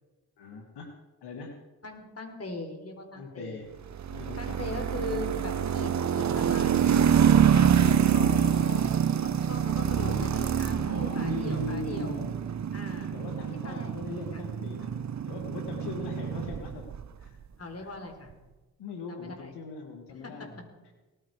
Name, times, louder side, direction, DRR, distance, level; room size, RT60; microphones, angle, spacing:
voice 1, 0.4-0.9 1.2-1.6 3.2-3.7 4.0-4.8 5.4-5.5 7.8-8.7 9.6-10.4 10.7-12.4 13.0-16.9 17.2-17.4 17.8-17.9 18.8-20.6, left 4 dB, 85° left, 3 dB, 2.1 m, -40 dB
voice 2, 1.8-3.7 4.4-8.3 8.6-8.9 9.2-12.2 12.7-13.2 13.6-13.9 14.3-14.4 17.6-18.3 19.1-19.5 20.2-20.4, left 2 dB, 40° left, 5 dB, 4.1 m, -40 dB
sound 1, 3.9-17.1, right 8 dB, 45° right, 0.9 m, -26 dB
18.5 x 14.5 x 4.9 m, 1.2 s
supercardioid pair, 60°, 39 cm